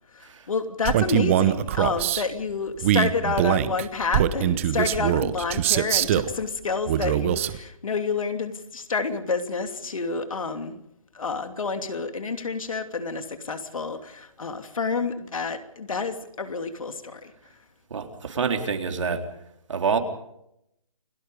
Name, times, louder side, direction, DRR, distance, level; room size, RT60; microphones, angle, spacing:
voice 1, 0.1-10.8 11.1-17.3, left 4 dB, 75° left, 7 dB, 2.8 m, -29 dB
Male speech man speaking, 0.8-2.2 2.8-6.3 6.9-7.6, right 12 dB, 25° right, 0.9 m, -23 dB
voice 2, 17.9-19.2 19.7-20.0, right 5 dB, 60° right, 4 dB, 3.7 m, -26 dB
29.5 x 18.0 x 5.2 m, 0.79 s
hypercardioid pair, 165°, 18 cm